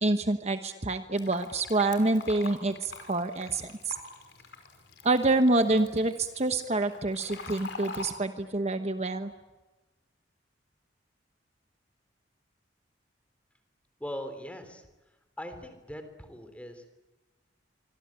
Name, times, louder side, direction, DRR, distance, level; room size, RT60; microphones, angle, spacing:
voice 1, 0.0-3.9 5.0-9.3, right 2 dB, 35° right, 8 dB, 1.1 m, -27 dB
Fill (with liquid), 1.2-8.1, left 3 dB, 65° left, 5.3 m, -44 dB
voice 2, 14.0-14.9 15.4-16.9, equal, 5° left, 8 dB, 3.4 m, -40 dB
25.5 x 25.5 x 8.8 m, 1.2 s
head